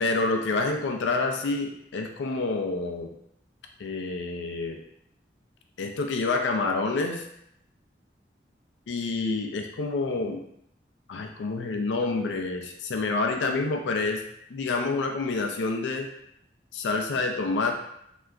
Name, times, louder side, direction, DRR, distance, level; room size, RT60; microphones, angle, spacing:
voice 1, 0.0-3.1 3.8-4.8 5.8-7.2 8.9-10.4 11.1-14.2 14.5-16.1 16.7-17.7, left 3 dB, 80° left, 4 dB, 0.4 m, -28 dB
2.9 x 2.3 x 2.4 m, 0.75 s
head